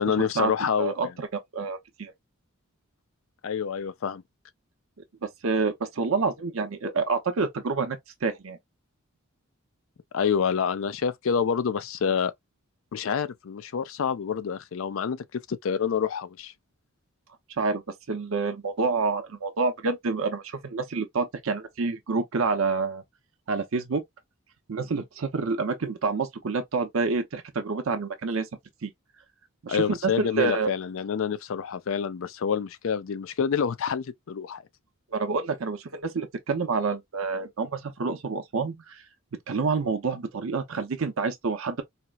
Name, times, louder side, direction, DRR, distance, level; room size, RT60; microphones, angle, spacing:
voice 1, 0.0-1.1 3.4-4.2 10.1-12.3 12.9-16.5 29.7-34.6, left 7 dB, 65° left, 0.4 m, -27 dB
voice 2, 0.8-2.1 5.4-8.6 17.6-17.8 18.1-23.0 23.5-24.0 24.7-28.5 28.8-28.9 29.6-30.7 35.1-39.0 39.5-41.8, right 4 dB, 70° right, 0.6 m, -28 dB
4.2 x 2.0 x 2.2 m
head